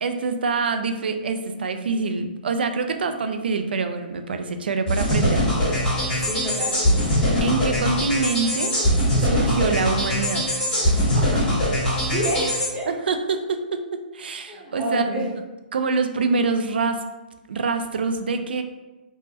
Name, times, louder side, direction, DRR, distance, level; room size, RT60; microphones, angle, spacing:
voice 1, 0.0-5.5 7.4-8.8 9.2-10.5 11.1-11.4 12.9-13.8 14.1-15.3 15.7-17.0 17.5-18.6, right 4 dB, 75° right, 7 dB, 0.3 m, -25 dB
sound 1, 4.9-12.7, equal, 10° left, 1.5 m, -22 dB
voice 2, 6.3-6.8 12.1-12.9 14.5-15.3 16.3-16.4, equal, 15° right, -6 dB, 0.7 m, -28 dB
3.3 x 2.1 x 2.7 m, 1.1 s
hypercardioid pair, 140°, 5 cm